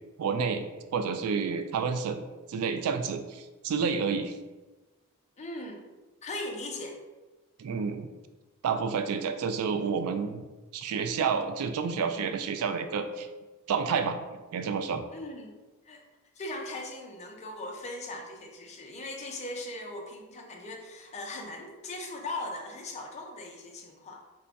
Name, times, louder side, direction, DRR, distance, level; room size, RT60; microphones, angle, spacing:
voice 1, 0.2-2.2 2.5-4.4 7.6-8.1 8.6-10.4 10.7-13.3 13.7-14.2 14.5-15.0, right 5 dB, 75° right, 8 dB, 0.3 m, -29 dB
voice 2, 5.4-5.8 6.2-7.0 15.1-15.5 15.9-16.0 16.4-24.2, left 2 dB, 30° left, 1 dB, 0.5 m, -39 dB
3.3 x 2.2 x 3.9 m, 1.2 s
head